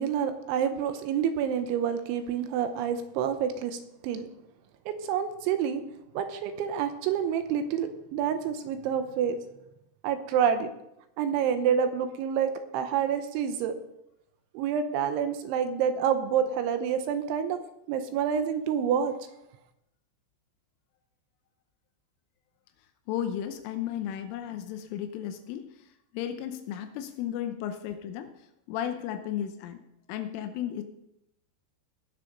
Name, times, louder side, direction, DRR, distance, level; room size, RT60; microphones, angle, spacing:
voice 1, 0.0-4.3 4.9-5.8 6.1-9.4 10.0-10.7 11.2-13.8 14.5-17.6 17.9-19.2, right 8 dB, 80° right, 8 dB, 3.1 m, -28 dB
voice 2, 23.1-25.7 26.1-28.3 28.7-29.8 30.1-30.8, left 10 dB, 85° left, 8 dB, 3.3 m, -34 dB
18.5 x 6.9 x 5.3 m, 0.83 s
omnidirectional pair, 5.7 m